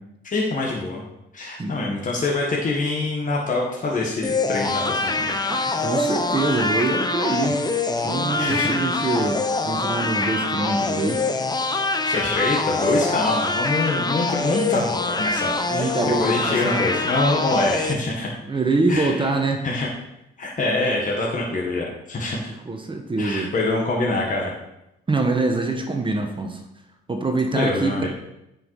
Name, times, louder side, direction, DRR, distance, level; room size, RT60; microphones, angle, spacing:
voice 1, 0.3-1.0 1.3-5.3 8.4-8.7 12.0-15.9 16.2-18.3 18.9-19.2 19.6-19.9 20.4-22.4 23.2-24.5 27.5-28.1, left 2 dB, 40° left, -2 dB, 1.8 m, -25 dB
voice 2, 1.6-1.9 5.5-7.6 8.0-11.2 15.7-16.8 18.5-19.6 22.4-23.5 25.1-26.6 27.1-28.1, right 3 dB, 25° right, 3 dB, 1.3 m, -24 dB
sound 1, 4.2-17.9, left 3 dB, 20° left, 0.9 m, -24 dB
9.6 x 5.6 x 4.9 m, 0.87 s
cardioid pair, 90°, 20 cm